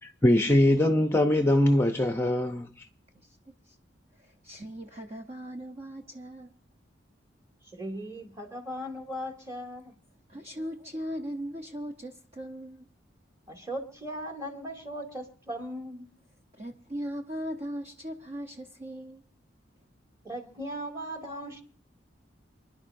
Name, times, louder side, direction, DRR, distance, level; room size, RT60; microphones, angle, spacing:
voice 1, 0.0-2.9, left 1 dB, 15° left, 0.6 m, -22 dB
voice 2, 3.1-3.8 4.1-6.5 10.3-12.9 16.5-19.2, equal, 35° right, 0.8 m, -39 dB
voice 3, 7.7-9.9 13.5-16.1 20.2-21.6, equal, 15° right, 2.4 m, -38 dB
28.0 x 11.0 x 2.6 m
head